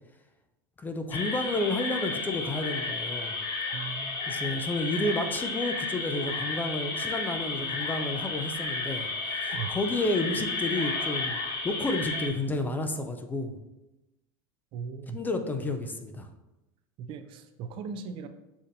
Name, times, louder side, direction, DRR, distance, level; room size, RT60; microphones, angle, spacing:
voice 1, 0.8-3.3 4.3-11.4 11.6-13.6 15.1-16.3, left 2 dB, 15° left, 6 dB, 0.4 m, -31 dB
sound 1, 1.1-12.3, left 3 dB, 40° left, 1.0 m, -32 dB
voice 2, 3.7-4.3 9.5-9.8 14.7-15.2 17.0-18.3, right 6 dB, 50° right, 9 dB, 0.4 m, -38 dB
6.9 x 2.7 x 2.6 m, 0.98 s
supercardioid pair, 105°, 11 cm